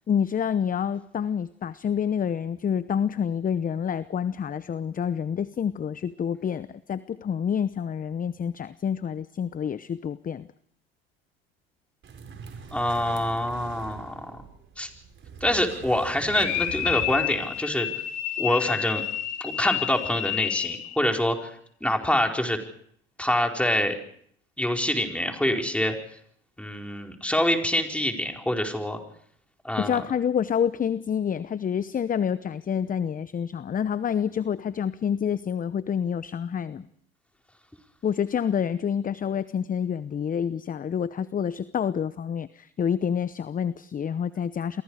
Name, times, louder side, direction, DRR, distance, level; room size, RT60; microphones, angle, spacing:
voice 1, 0.1-10.5 29.8-36.9 38.0-44.8, left 8 dB, 25° left, 16 dB, 0.9 m, -28 dB
sound 1, 12.0-17.7, right 5 dB, 40° right, 5.1 m, -43 dB
voice 2, 12.7-14.2 14.8-14.9 15.4-17.9 18.4-19.0 19.4-21.5 21.8-22.6 23.2-24.0 24.6-25.9 26.6-29.0 29.6-30.0, left 1 dB, 5° left, 2 dB, 4.8 m, -25 dB
sound 2, 16.3-21.0, left 12 dB, 60° left, 2.8 m, -30 dB
29.5 x 23.5 x 5.0 m, 0.64 s
hypercardioid pair, 75°, 30 cm